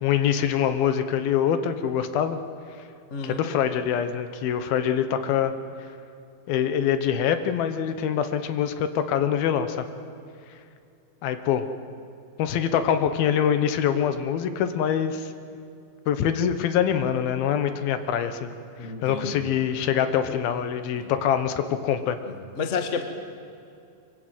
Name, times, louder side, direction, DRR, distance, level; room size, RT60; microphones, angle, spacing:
voice 1, 0.0-2.4 3.2-5.5 6.5-9.8 11.2-11.7 12.4-15.3 16.1-18.5 19.0-22.2, left 9 dB, 80° left, 9 dB, 3.0 m, -24 dB
voice 2, 3.1-3.5 18.8-19.4 21.0-21.1 22.5-23.1, left 5 dB, 45° left, 6 dB, 0.9 m, -30 dB
23.5 x 23.0 x 9.1 m, 2.5 s
omnidirectional pair, 4.3 m